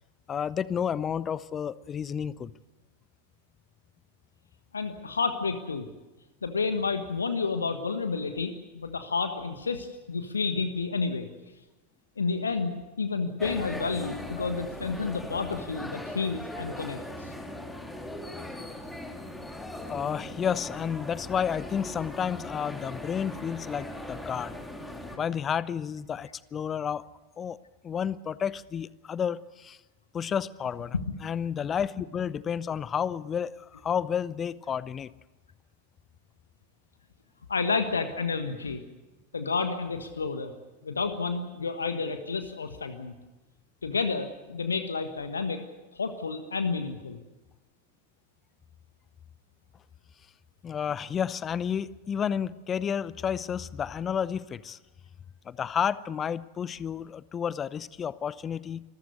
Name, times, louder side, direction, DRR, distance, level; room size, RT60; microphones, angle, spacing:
voice 1, 0.3-2.5 19.9-24.5 25.2-27.1 27.4-27.6 27.8-29.8 30.1-35.1 50.6-54.8 55.5-58.8, left 8 dB, 25° left, 20 dB, 0.6 m, -31 dB
voice 2, 4.7-5.9 6.4-11.3 12.2-17.3 30.9-31.1 37.5-38.8 39.3-40.5 40.8-43.1 43.8-45.6 45.9-47.2, left 4 dB, 75° left, 9 dB, 1.4 m, -30 dB
sound 1, 13.4-25.2, left 1 dB, 5° left, 2.6 m, -39 dB
27.0 x 14.0 x 8.3 m, 1.1 s
figure-of-eight pair, 90°, 0 cm